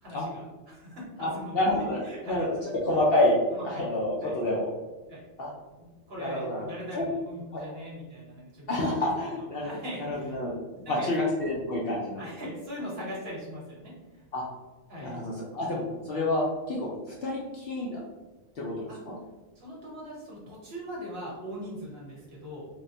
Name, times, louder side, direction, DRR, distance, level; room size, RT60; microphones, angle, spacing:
voice 1, 0.0-1.6 2.0-2.4 3.5-3.8 4.2-4.3 5.1-5.3 5.8-9.1 9.6-10.4 10.7-11.3 12.2-14.2 14.9-15.2 18.9-19.0 19.6-22.7, equal, 55° right, -5 dB, 1.1 m, -40 dB
voice 2, 1.2-3.4 3.6-4.7 5.4-5.5 6.2-6.7 6.9-7.1 7.5-7.6 8.7-9.7 10.1-10.6 10.9-12.2 14.3-14.4 15.0-18.0 18.6-18.7 19.1-19.2, left 1 dB, 60° left, -4 dB, 0.7 m, -28 dB
3.4 x 2.1 x 2.6 m, 1.2 s
omnidirectional pair, 1.4 m